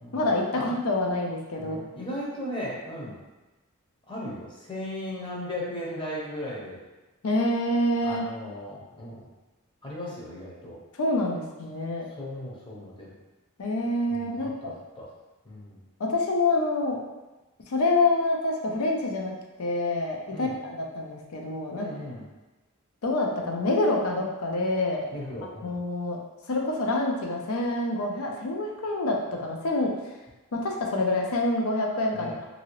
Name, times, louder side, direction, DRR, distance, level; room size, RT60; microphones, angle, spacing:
voice 1, 0.1-1.8 7.2-8.3 11.0-12.1 13.6-14.7 16.0-17.0 17.7-21.9 23.0-25.0 25.6-26.2 26.5-29.9 30.5-32.3, left 2 dB, 80° left, 0 dB, 0.5 m, -26 dB
voice 2, 1.6-3.2 4.1-6.8 8.0-9.2 9.8-10.8 12.2-13.1 14.1-15.1 15.5-15.8 20.3-20.5 21.7-22.2 25.1-25.8 32.1-32.4, left 1 dB, 20° left, -5 dB, 0.7 m, -37 dB
2.8 x 2.7 x 3.0 m, 1.1 s
head